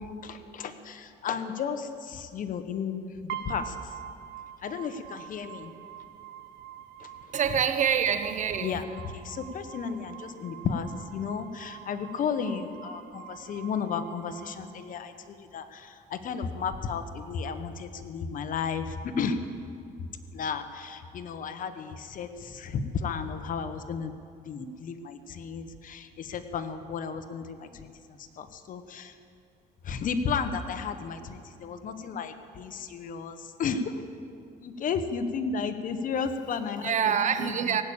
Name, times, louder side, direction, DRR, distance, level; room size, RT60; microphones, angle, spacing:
voice 1, 0.0-3.9 4.6-5.7 7.0-7.1 8.6-19.4 20.3-24.1 24.4-29.2 29.8-33.9 34.6-37.8, left 6 dB, 50° left, 9 dB, 1.1 m, -33 dB
sound 1, 3.3-15.3, right 11 dB, 80° right, 0.8 m, -45 dB
voice 2, 7.3-8.8 36.8-37.8, right 8 dB, 45° right, 10 dB, 0.9 m, -26 dB
17.5 x 8.7 x 8.7 m, 2.4 s
cardioid pair, 110°, 17 cm